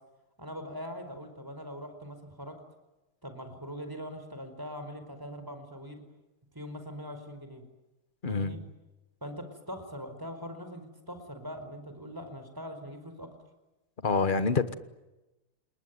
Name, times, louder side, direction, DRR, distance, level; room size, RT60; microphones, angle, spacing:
voice 1, 0.4-2.5 3.2-6.0 6.5-7.6 8.3-8.6 9.2-13.3, equal, 10° right, 7 dB, 4.5 m, -42 dB
voice 2, 8.2-8.6 14.0-14.7, left 4 dB, 30° left, 12 dB, 1.0 m, -26 dB
29.5 x 20.0 x 9.5 m, 1.0 s
omnidirectional pair, 2.4 m